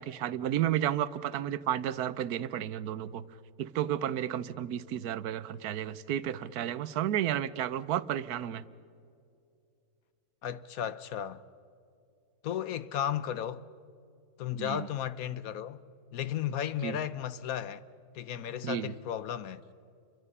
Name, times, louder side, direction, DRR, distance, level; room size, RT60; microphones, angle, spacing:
voice 1, 0.0-3.2 3.6-8.6 14.6-14.9 16.8-17.0 18.6-18.9, right 11 dB, 85° right, 1.3 m, -32 dB
voice 2, 10.4-11.4 12.4-13.6 14.4-15.8 16.1-17.8 18.1-19.6, left 10 dB, 75° left, 1.2 m, -34 dB
29.5 x 24.0 x 5.5 m
omnidirectional pair, 1.6 m